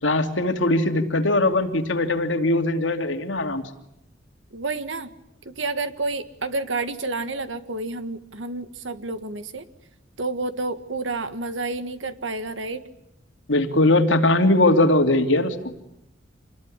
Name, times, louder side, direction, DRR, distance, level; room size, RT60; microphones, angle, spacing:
voice 1, 0.0-3.6 13.5-15.5, left 2 dB, 90° left, 6 dB, 2.8 m, -20 dB
voice 2, 4.5-5.1 5.5-9.6 10.2-12.8, right 3 dB, 85° right, 10 dB, 1.8 m, -29 dB
27.5 x 20.5 x 9.9 m, 0.83 s
head